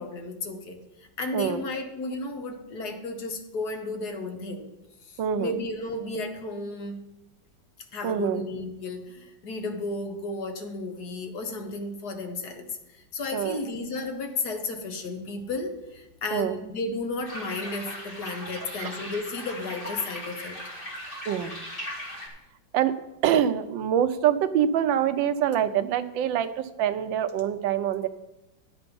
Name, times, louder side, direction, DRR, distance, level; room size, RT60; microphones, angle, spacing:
voice 1, 0.0-4.7 5.0-7.1 7.9-20.6, left 2 dB, 60° left, 5 dB, 1.6 m, -33 dB
voice 2, 1.3-1.6 5.2-5.6 5.8-5.9 8.0-8.4 13.3-13.6 16.3-16.6 18.8-18.9 21.3-21.6 22.7-22.9 23.2-28.1, right 9 dB, 85° right, 11 dB, 1.4 m, -25 dB
sound 1, 17.2-22.3, left 1 dB, 30° left, 2.7 m, -38 dB
11.5 x 8.1 x 5.3 m, 0.94 s
omnidirectional pair, 2.0 m